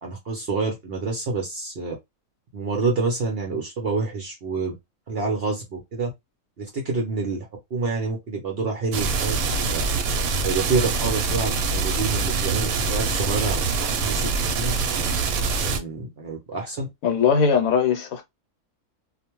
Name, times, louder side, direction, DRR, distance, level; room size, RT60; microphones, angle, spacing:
voice 1, 0.0-2.0 2.5-4.8 5.1-6.1 6.6-9.8 10.4-14.7 15.6-16.9, right 4 dB, 55° right, 0.7 m, -28 dB
sound 1, 8.9-15.8, right 4 dB, 75° right, 1.0 m, -24 dB
voice 2, 17.0-18.2, left 6 dB, 70° left, 1.1 m, -20 dB
2.4 x 2.2 x 2.9 m
omnidirectional pair, 1.6 m